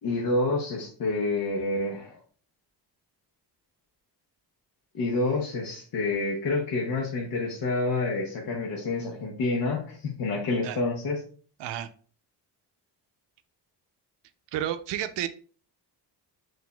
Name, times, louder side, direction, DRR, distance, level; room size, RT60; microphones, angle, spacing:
voice 1, 0.0-2.2 4.9-11.2, left 2 dB, 55° left, -1 dB, 0.9 m, -28 dB
voice 2, 14.5-15.3, right 11 dB, 90° right, 11 dB, 0.5 m, -31 dB
5.9 x 2.6 x 2.2 m, 0.42 s
cardioid pair, 125°, 41 cm